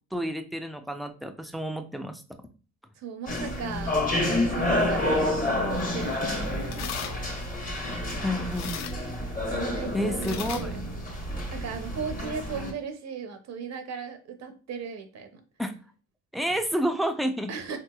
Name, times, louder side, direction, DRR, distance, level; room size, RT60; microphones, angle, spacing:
voice 1, 0.1-2.2 8.2-8.8 9.9-10.7 15.6-15.7 16.3-17.5, equal, ahead, 6 dB, 0.3 m, -29 dB
voice 2, 3.0-4.0 4.5-5.3 5.7-7.2 9.5-11.0 11.5-15.4 17.5-17.8, right 6 dB, 60° right, 7 dB, 0.6 m, -37 dB
sound 1, 3.3-12.7, left 1 dB, 30° left, 1.0 m, -29 dB
sound 2, 5.7-11.7, left 9 dB, 65° left, 0.4 m, -42 dB
3.8 x 2.9 x 2.2 m, 0.36 s
cardioid pair, 90°, 30 cm